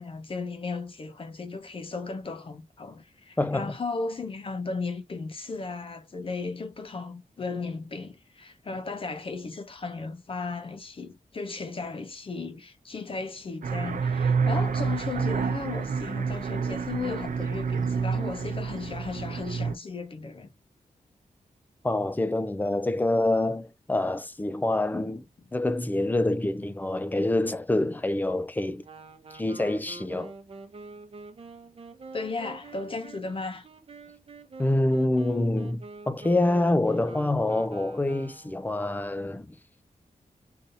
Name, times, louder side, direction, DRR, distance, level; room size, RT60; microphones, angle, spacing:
voice 1, 0.0-20.5 32.1-33.7, left 4 dB, 40° left, 0.8 m, -35 dB
voice 2, 3.4-3.7 21.8-25.3 25.5-28.8 29.3-30.3 34.6-39.5, left 2 dB, 15° left, 0.4 m, -26 dB
sound 1, 13.6-19.7, right 5 dB, 80° right, 0.7 m, -28 dB
Wind instrument woodwind instrument, 28.8-38.7, right 3 dB, 45° right, 0.9 m, -46 dB
3.9 x 2.7 x 3.9 m
wide cardioid pair, 175°, 14 cm